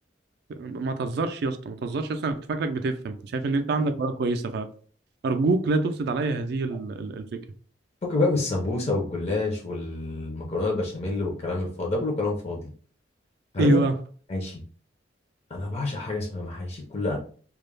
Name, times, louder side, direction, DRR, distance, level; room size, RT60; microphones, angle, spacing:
voice 1, 0.5-4.7 5.2-7.4 13.6-13.9, right 3 dB, 60° right, 8 dB, 0.3 m, -26 dB
voice 2, 8.0-12.6 13.5-13.8 14.3-14.6 15.5-17.2, left 2 dB, 35° left, 0 dB, 0.5 m, -27 dB
2.3 x 2.0 x 3.2 m, 0.43 s
head